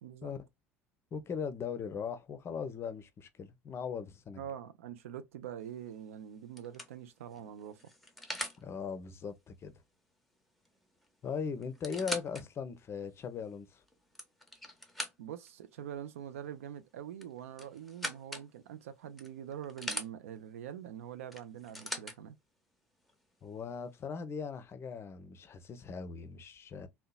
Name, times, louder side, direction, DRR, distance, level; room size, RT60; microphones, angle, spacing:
voice 1, 0.0-0.3 4.4-7.8 15.2-22.4, right 9 dB, 75° right, 0.4 m, -44 dB
voice 2, 1.1-4.4 8.6-9.7 11.2-13.8 23.4-26.9, left 6 dB, 35° left, 0.5 m, -39 dB
sound 1, 5.7-6.0 6.6-8.6 10.7-10.8 11.0-11.1 11.6-12.4 13.0-13.1 13.9-15.5 17.2-18.5 19.2-20.1 21.3-22.2 23.1-23.2, left 1 dB, ahead, 0.7 m, -41 dB
2.7 x 2.1 x 2.2 m
figure-of-eight pair, 65°, 8 cm